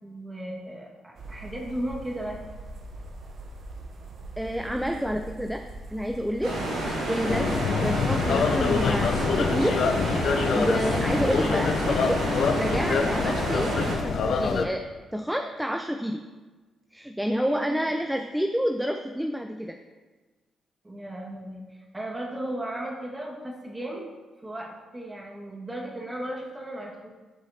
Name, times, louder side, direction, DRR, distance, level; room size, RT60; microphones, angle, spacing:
voice 1, 0.0-2.4 6.4-6.8 17.4-17.9 20.8-24.0 24.4-27.1, right 1 dB, 20° right, -2 dB, 1.8 m, -36 dB
sound 1, 1.1-14.2, right 1 dB, 70° right, 0.8 m, -42 dB
voice 2, 4.4-5.6 5.9-6.7 7.0-9.8 10.5-12.3 12.6-16.2 16.9-19.8, equal, 5° right, 5 dB, 0.5 m, -29 dB
sound 2, 6.4-14.0, right 1 dB, 85° right, 1.7 m, -30 dB
sound 3, 7.3-14.7, left 5 dB, 65° left, 0.5 m, -26 dB
11.0 x 4.8 x 2.9 m, 1.3 s
supercardioid pair, 55°, 0 cm